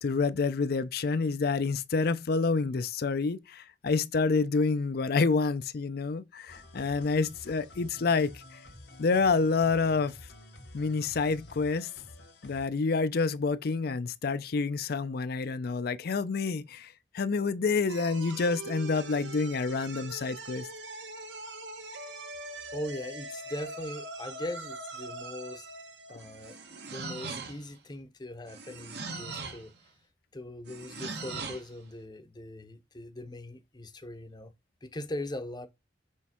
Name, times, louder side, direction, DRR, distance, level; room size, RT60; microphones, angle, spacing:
voice 1, 0.0-8.6 9.0-10.1 10.7-11.9 12.4-20.7, left 4 dB, 60° left, 0.5 m, -28 dB
sound 1, 6.5-12.7, left 1 dB, 90° left, 1.5 m, -50 dB
sound 2, 17.9-27.1, right 2 dB, 80° right, 0.9 m, -42 dB
voice 2, 22.7-25.6 26.1-26.6 26.9-29.7 30.3-34.5 34.8-35.7, left 1 dB, 25° left, 0.7 m, -40 dB
sound 3, 26.2-27.8 28.5-29.7 30.7-31.7, right 4 dB, 65° right, 1.2 m, -40 dB
6.3 x 3.4 x 4.3 m
head